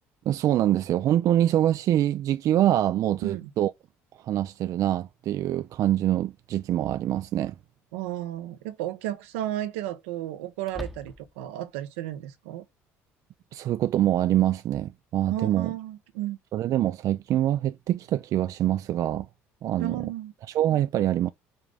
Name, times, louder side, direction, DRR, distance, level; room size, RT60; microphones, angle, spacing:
voice 1, 0.3-3.7 4.2-7.5 13.5-15.7 16.5-19.3 19.6-20.1 20.5-21.3, right 12 dB, 55° right, 0.4 m, -24 dB
sound 1, 6.0-6.1 7.9-8.4 8.7-8.8 10.6-11.5, left 1 dB, ahead, 0.9 m, -42 dB
voice 2, 7.9-12.6 15.3-16.4 19.8-20.3, right 13 dB, 85° right, 0.9 m, -33 dB
5.6 x 3.9 x 4.9 m
supercardioid pair, 70°, 7 cm